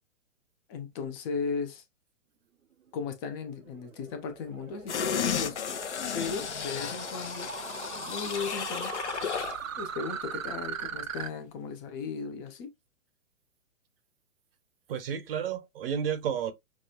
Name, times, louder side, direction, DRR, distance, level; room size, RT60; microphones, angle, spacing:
voice 1, 0.7-1.8 2.9-5.6 6.1-7.5 7.9-8.9 9.8-12.7, left 5 dB, 20° left, 0.5 m, -36 dB
sound 1, 3.3-11.3, right 7 dB, 80° right, 0.7 m, -40 dB
sound 2, 4.9-9.6 10.0-10.1, left 8 dB, 60° left, 0.8 m, -33 dB
voice 2, 14.9-16.5, right 8 dB, 45° right, 0.8 m, -31 dB
6.0 x 2.3 x 2.7 m
figure-of-eight pair, 120°, 39 cm